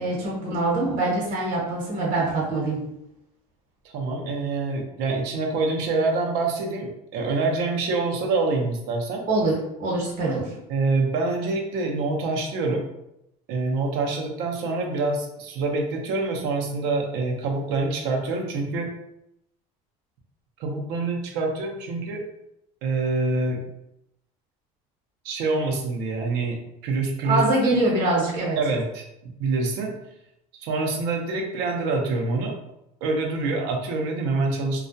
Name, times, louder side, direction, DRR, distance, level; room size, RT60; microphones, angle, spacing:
voice 1, 0.0-2.8 9.3-10.5 27.2-28.6, right 2 dB, 50° right, -5 dB, 1.0 m, -24 dB
voice 2, 3.8-9.2 10.7-12.9 13.5-18.9 20.6-22.2 22.8-23.6 25.2-26.6 26.8-27.4 28.6-29.9 30.5-32.5 33.0-34.9, right 3 dB, 70° right, 1 dB, 0.6 m, -26 dB
2.3 x 2.1 x 2.6 m, 0.83 s
supercardioid pair, 110°, 18 cm